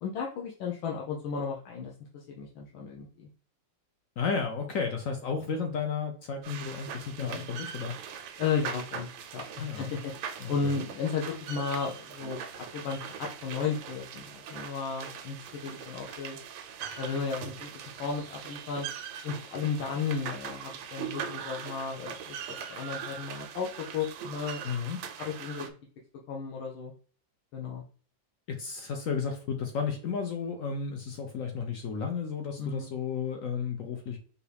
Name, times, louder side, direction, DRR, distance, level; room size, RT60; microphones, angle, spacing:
voice 1, 0.0-3.3 8.4-10.1 10.5-16.4 17.0-17.7 18.0-18.9 19.2-23.7 23.9-24.6 25.2-25.7 26.3-26.9 27.5-27.8 32.6-32.9, left 5 dB, 85° left, -1 dB, 1.5 m, -34 dB
voice 2, 4.2-7.9 9.6-9.9 10.4-10.7 24.6-25.0 28.5-34.2, left 6 dB, 70° left, 4 dB, 0.7 m, -33 dB
sound 1, 6.4-25.7, right 7 dB, 85° right, 1.3 m, -41 dB
4.7 x 2.6 x 3.3 m, 0.42 s
omnidirectional pair, 2.1 m